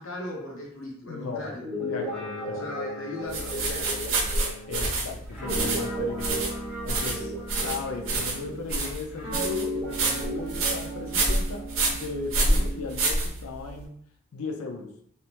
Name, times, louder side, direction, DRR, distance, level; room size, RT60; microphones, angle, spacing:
voice 1, 0.0-1.6 2.5-4.2 7.1-7.3, left 1 dB, 65° left, -2 dB, 0.8 m, -38 dB
voice 2, 1.1-1.5 1.8-2.7 4.7-6.4 6.8-7.3 7.6-11.7 11.9-13.9 14.3-14.9, left 4 dB, 85° left, 3 dB, 0.4 m, -37 dB
Guitar, 1.5-8.7 9.2-12.9, equal, ahead, 0.8 m, -34 dB
sound 1, 3.3-13.8, right 2 dB, 70° right, 0.7 m, -28 dB
2.7 x 2.0 x 3.0 m, 0.67 s
head